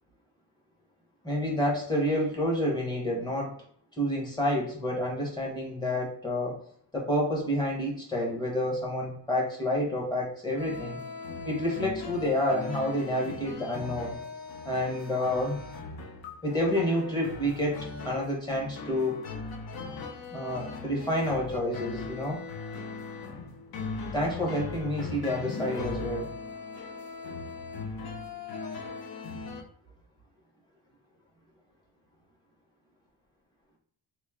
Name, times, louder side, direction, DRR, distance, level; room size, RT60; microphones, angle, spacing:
voice 1, 1.2-3.5 4.0-6.6 6.9-11.0 11.4-14.2 14.6-15.6 16.4-19.2 20.3-22.4 24.1-26.3, left 1 dB, 10° left, -2 dB, 0.9 m, -29 dB
sound 1, 10.6-29.6, left 4 dB, 55° left, 0.6 m, -39 dB
3.0 x 2.6 x 3.5 m, 0.63 s
wide cardioid pair, 180°, 42 cm